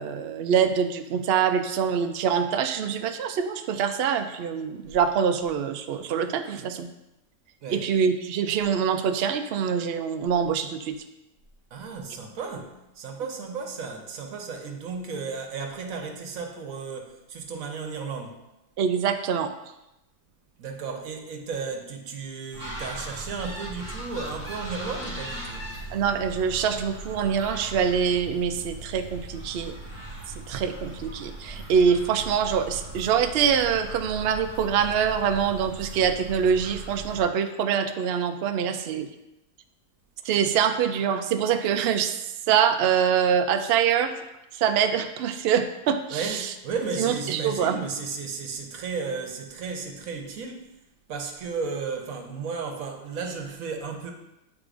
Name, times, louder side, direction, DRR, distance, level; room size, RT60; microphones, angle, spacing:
voice 1, 0.0-6.9 7.7-10.9 18.8-19.5 25.9-29.7 30.5-39.1 40.2-42.1 42.5-44.1 44.5-46.5 47.0-47.8, right 7 dB, 85° right, 8 dB, 0.5 m, -24 dB
voice 2, 11.7-18.4 20.6-25.7 46.1-50.6 51.1-54.1, right 5 dB, 65° right, 3 dB, 1.2 m, -34 dB
sound 1, 22.5-37.2, right 1 dB, 10° left, 2.2 m, -39 dB
8.5 x 4.8 x 2.5 m, 0.91 s
omnidirectional pair, 1.6 m